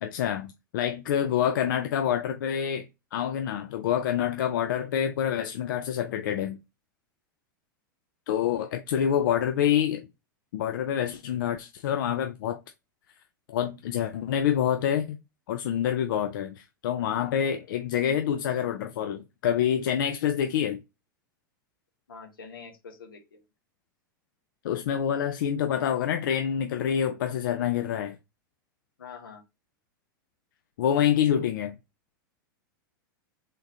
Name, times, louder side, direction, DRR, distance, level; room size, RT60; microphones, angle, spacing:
voice 1, 0.0-6.6 8.3-10.1 10.5-12.6 13.5-15.2 15.5-20.8 24.6-28.2 30.8-31.8, left 9 dB, 65° left, 0.5 m, -27 dB
voice 2, 8.3-8.7 22.1-23.5 29.0-29.4, left 5 dB, 85° left, 1.1 m, -46 dB
3.7 x 3.5 x 2.7 m
hypercardioid pair, 100°, 11 cm